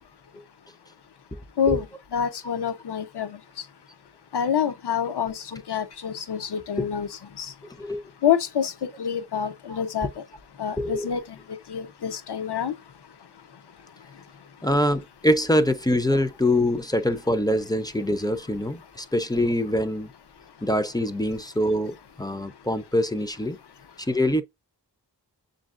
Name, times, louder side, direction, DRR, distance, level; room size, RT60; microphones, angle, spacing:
voice 1, 2.1-3.3 4.3-7.1 7.4-7.5 8.2-8.7 9.0-10.1 10.6-11.2 11.7-12.7, left 8 dB, 70° left, 0.6 m, -26 dB
voice 2, 7.6-8.0 9.7-9.8 10.8-11.1 14.6-20.1 20.6-23.6 24.0-24.4, left 1 dB, 10° left, 0.4 m, -24 dB
7.0 x 2.6 x 2.4 m
wide cardioid pair, 55°, 41 cm